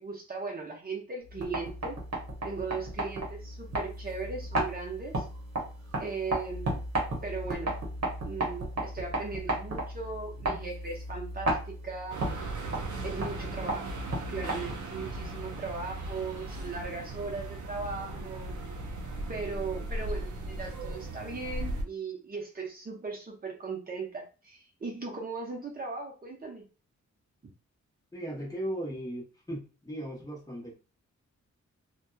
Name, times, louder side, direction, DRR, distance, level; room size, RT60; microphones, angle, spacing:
voice 1, 0.0-2.0 2.4-5.2 6.0-6.8 7.2-7.8 8.2-12.2 13.0-14.0 14.3-18.5 19.3-26.6, right 4 dB, 30° right, 0 dB, 0.7 m, -38 dB
sound 1, 1.2-15.0, right 1 dB, 60° right, 0.9 m, -34 dB
sound 2, 12.1-21.8, right 2 dB, 85° right, 0.5 m, -37 dB
voice 2, 28.1-30.7, equal, 10° left, -4 dB, 0.8 m, -37 dB
2.7 x 2.2 x 2.2 m, 0.34 s
wide cardioid pair, 165°, 29 cm